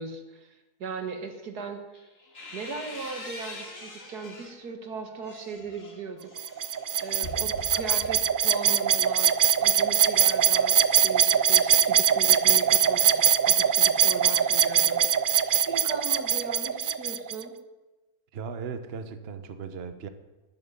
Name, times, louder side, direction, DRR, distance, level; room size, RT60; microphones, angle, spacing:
voice 1, 0.0-1.8 2.5-6.3 7.0-17.5, right 5 dB, 90° right, 6 dB, 2.2 m, -38 dB
sound 1, 1.9-4.6 5.1-8.4, left 1 dB, 55° left, 3.0 m, -43 dB
sound 2, 6.4-17.4, right 8 dB, 65° right, 0.5 m, -22 dB
voice 2, 18.3-20.1, right 5 dB, 45° right, 10 dB, 1.1 m, -37 dB
13.0 x 9.2 x 9.8 m, 1.1 s
omnidirectional pair, 1.6 m